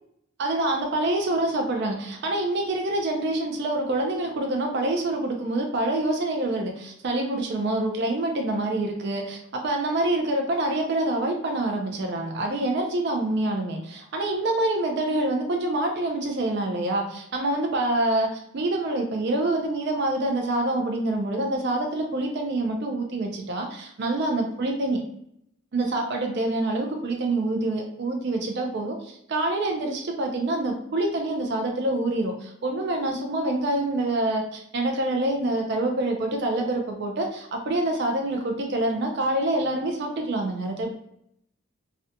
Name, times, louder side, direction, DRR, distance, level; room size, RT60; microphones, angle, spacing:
voice 1, 0.4-25.0 25.7-40.9, right 2 dB, 50° right, 2 dB, 0.4 m, -26 dB
2.5 x 2.1 x 2.7 m, 0.73 s
head